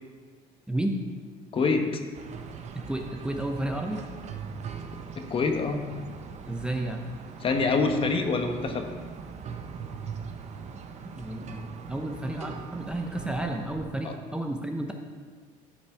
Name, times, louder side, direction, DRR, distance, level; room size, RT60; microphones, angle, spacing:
voice 1, 0.7-1.0 2.7-4.0 6.5-7.0 11.2-14.9, right 1 dB, 5° right, 3 dB, 0.7 m, -32 dB
voice 2, 1.5-2.0 5.1-5.8 7.4-8.9 14.0-14.1, left 4 dB, 40° left, 5 dB, 1.0 m, -25 dB
sound 1, 2.1-13.9, right 6 dB, 50° right, 0.7 m, -41 dB
12.0 x 5.5 x 4.7 m, 1.5 s
cardioid pair, 120°, 15 cm